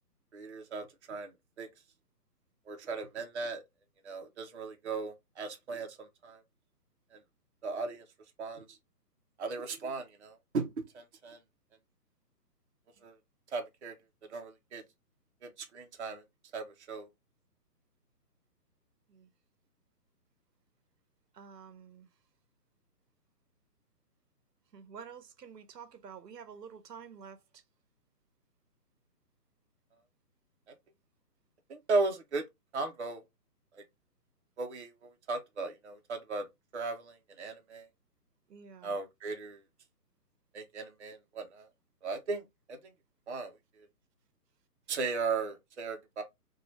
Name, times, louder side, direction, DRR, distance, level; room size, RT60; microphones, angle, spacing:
voice 1, 0.3-1.3 1.6-1.7 2.7-3.6 4.0-6.4 7.1-7.2 7.6-8.0 8.4-8.8 9.4-11.4 13.0-13.2 13.5-13.9 14.3-14.8 15.4-16.2 16.5-17.1 31.7-32.5 32.7-33.2 33.7-33.8 34.6-36.5 36.7-37.9 38.8-39.6 40.5-41.7 42.0-42.4 42.7-42.8 43.3-43.9 44.9-46.2, right 3 dB, 45° right, 0.6 m, -36 dB
voice 2, 21.3-22.1 24.7-27.6 38.5-38.9, right 6 dB, 80° right, 0.8 m, -49 dB
2.7 x 2.3 x 3.0 m
hypercardioid pair, 165°, 48 cm